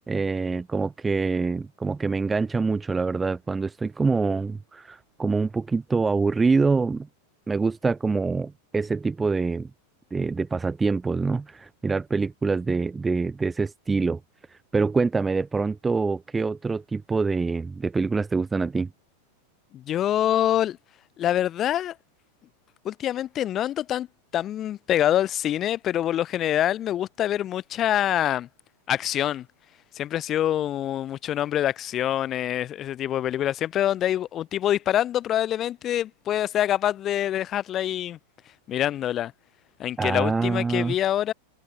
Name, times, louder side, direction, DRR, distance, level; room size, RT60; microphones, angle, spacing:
voice 1, 0.0-7.1 7.5-9.7 10.1-14.2 14.7-18.9 40.0-40.9, right 4 dB, 10° right, 3.7 m, -25 dB
voice 2, 19.7-20.8 21.2-21.9 22.8-24.1 24.3-28.5 28.9-29.4 29.9-38.2 38.7-39.3 39.8-41.3, left 11 dB, 30° left, 6.5 m, -25 dB
figure-of-eight pair, 90°, 0 cm